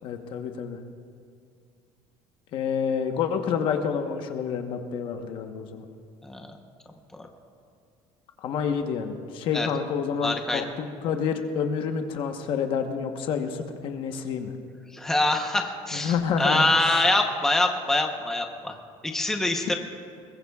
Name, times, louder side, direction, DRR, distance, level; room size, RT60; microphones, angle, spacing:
voice 1, 0.0-0.8 2.5-5.8 8.4-14.5 15.9-17.0, left 6 dB, 50° left, 6 dB, 1.1 m, -28 dB
voice 2, 10.2-10.6 14.9-18.8 19.0-19.7, left 2 dB, 5° left, 3 dB, 0.9 m, -24 dB
21.5 x 21.0 x 2.4 m, 2.3 s
cardioid pair, 165°, 11 cm